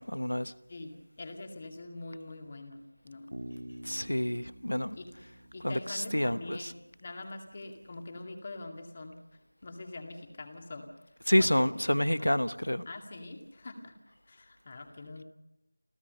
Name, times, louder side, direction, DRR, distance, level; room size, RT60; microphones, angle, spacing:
voice 1, 0.0-0.5 3.8-5.0 5.6-6.7 11.3-12.9, left 1 dB, 75° left, 15 dB, 1.0 m, -28 dB
voice 2, 0.7-3.3 4.9-5.1 5.5-9.2 9.6-10.9 11.4-11.7 12.1-12.3 12.9-14.0 14.3-15.2, left 2 dB, 25° left, 5 dB, 2.1 m, -44 dB
Bass guitar, 3.3-7.0, right 1 dB, 80° right, 2.2 m, -48 dB
29.0 x 14.5 x 6.8 m, 0.92 s
figure-of-eight pair, 170°, 0 cm